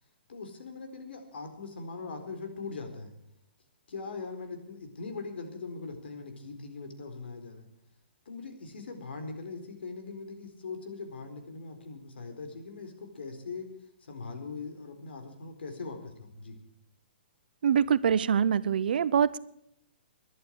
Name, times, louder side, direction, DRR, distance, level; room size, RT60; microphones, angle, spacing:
voice 1, 0.3-3.1 3.9-7.7 8.3-13.7 14.0-16.6, left 4 dB, 80° left, 6 dB, 4.3 m, -41 dB
voice 2, 17.6-19.4, right 8 dB, 60° right, 17 dB, 0.8 m, -24 dB
22.0 x 11.0 x 4.8 m, 0.76 s
hypercardioid pair, 170°, 6 cm